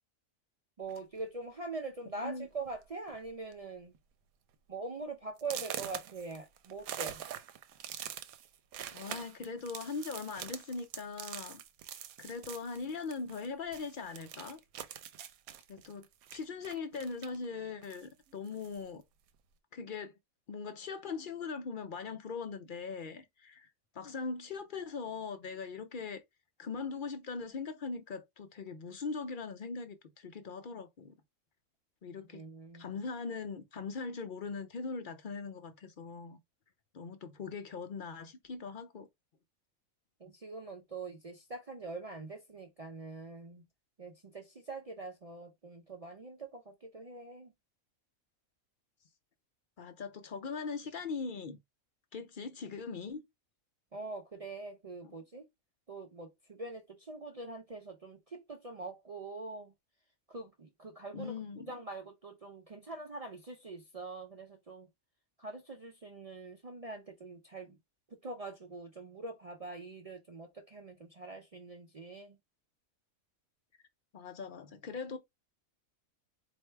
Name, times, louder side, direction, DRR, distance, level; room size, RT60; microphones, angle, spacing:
voice 1, 0.8-3.9 4.7-7.2 32.3-32.9 40.2-43.6 44.0-47.5 53.9-55.5 55.9-59.7 60.3-61.3 61.7-64.9 65.4-67.8 68.2-72.4, right 3 dB, 55° right, 0.4 m, -44 dB
sound 1, 0.9-1.2 2.0-2.1 2.5-2.8 3.1-3.5 3.9-4.0 4.5-4.6 5.4-13.5 13.7-17.4 17.8-18.8, right 10 dB, 85° right, 1.1 m, -44 dB
voice 2, 2.2-2.5 8.9-11.6 12.2-14.6 15.7-19.0 19.7-20.1 20.5-23.7 23.9-26.2 26.6-31.2 32.0-32.4 32.7-36.4 36.9-39.1 49.8-51.6 52.1-53.2 55.0-55.1 61.1-61.7 74.1-75.2, left 4 dB, 60° left, 0.5 m, -40 dB
4.4 x 2.6 x 3.2 m
omnidirectional pair, 1.5 m